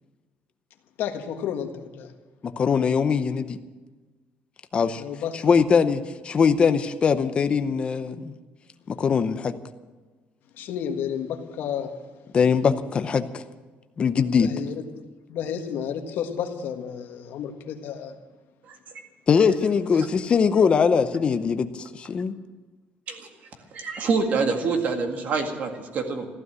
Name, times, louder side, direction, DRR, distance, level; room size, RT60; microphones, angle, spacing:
voice 1, 1.0-2.1 5.0-5.6 10.5-11.9 14.4-14.8 15.3-18.2, left 8 dB, 60° left, 5 dB, 1.6 m, -31 dB
voice 2, 2.4-3.6 4.7-5.0 5.4-8.3 8.9-9.5 12.3-13.4 14.0-14.5 19.3-22.3, left 6 dB, 25° left, 10 dB, 0.7 m, -21 dB
voice 3, 23.7-26.3, right 4 dB, 45° right, 4 dB, 2.0 m, -26 dB
15.0 x 12.5 x 7.6 m, 1.3 s
cardioid pair, 175°, 4 cm